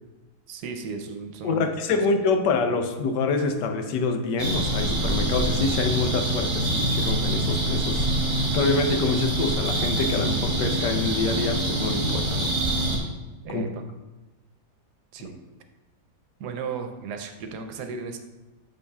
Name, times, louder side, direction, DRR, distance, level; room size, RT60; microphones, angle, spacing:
voice 1, 0.5-2.0 13.4-13.8 15.1-15.3 16.4-18.2, right 5 dB, 75° right, 6 dB, 1.2 m, -35 dB
voice 2, 1.4-12.5 13.5-13.6, left 4 dB, 85° left, 6 dB, 1.4 m, -26 dB
sound 1, 4.4-13.0, right 1 dB, 40° right, 1.6 m, -25 dB
8.4 x 6.6 x 2.3 m, 1.1 s
omnidirectional pair, 1.8 m